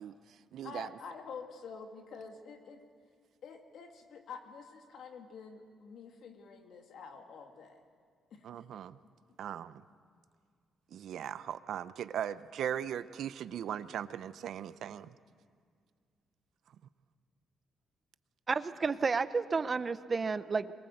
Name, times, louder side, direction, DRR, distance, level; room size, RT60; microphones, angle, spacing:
voice 1, 0.0-0.9 8.4-9.0 9.4-9.8 10.9-15.1, right 9 dB, 70° right, 14 dB, 0.7 m, -39 dB
voice 2, 0.6-2.8 3.4-7.8 8.3-8.5, left 5 dB, 65° left, 4 dB, 2.5 m, -48 dB
voice 3, 18.5-20.7, right 4 dB, 30° right, 14 dB, 0.7 m, -31 dB
23.0 x 22.5 x 8.0 m, 2.1 s
cardioid pair, 110°, 0 cm